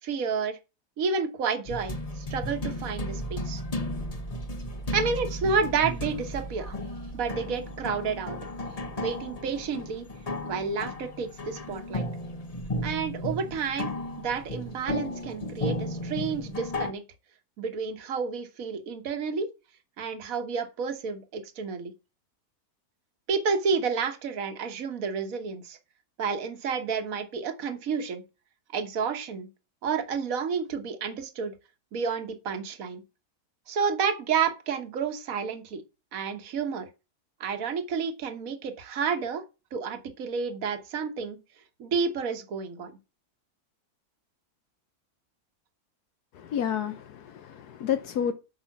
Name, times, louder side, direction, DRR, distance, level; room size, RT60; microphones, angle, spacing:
voice 1, 0.0-0.6 1.0-3.6 4.9-6.7 7.1-8.4 9.0-10.0 10.4-12.1 12.8-13.9 14.2-17.0 17.6-19.5 20.0-21.9 23.3-25.8 26.2-28.2 28.7-29.5 29.8-31.5 31.9-33.0 33.7-35.8 36.1-36.9 37.4-39.4 39.7-41.4 41.8-42.9, right 5 dB, 60° right, 1.6 m, -30 dB
sound 1, 1.7-16.9, left 1 dB, 30° left, 0.9 m, -34 dB
voice 2, 46.3-48.3, left 8 dB, 85° left, 1.4 m, -30 dB
9.2 x 5.7 x 5.8 m
omnidirectional pair, 1.6 m